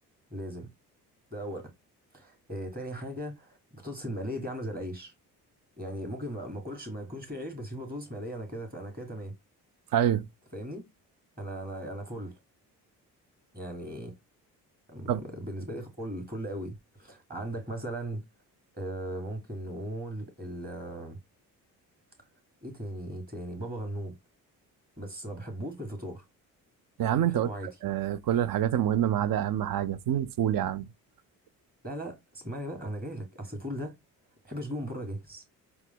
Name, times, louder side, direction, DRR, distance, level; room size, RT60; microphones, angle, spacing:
voice 1, 0.3-0.7 1.3-1.7 2.1-5.1 5.8-9.3 10.5-10.8 11.4-12.3 13.5-14.1 14.9-18.2 18.7-21.2 22.6-24.2 25.0-26.2 27.3-27.7 31.8-33.9 34.4-35.4, right 1 dB, 20° right, 2.0 m, -37 dB
voice 2, 9.9-10.3 15.1-15.2 27.0-27.5 27.8-30.9, right 11 dB, 55° right, 0.6 m, -26 dB
4.3 x 2.1 x 3.7 m
supercardioid pair, 55°, 41 cm